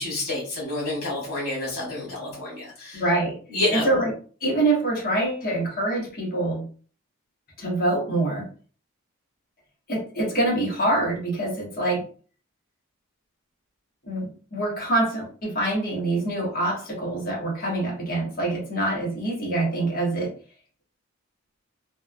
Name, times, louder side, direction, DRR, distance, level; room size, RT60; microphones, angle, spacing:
voice 1, 0.0-3.0 3.5-3.9, left 2 dB, 75° left, -4 dB, 1.4 m, -28 dB
voice 2, 2.9-3.3 3.7-4.1 4.4-6.6 7.6-8.4 9.9-12.0 14.0-20.3, right 2 dB, 40° left, -3 dB, 1.2 m, -25 dB
3.3 x 2.3 x 2.2 m, 0.41 s
head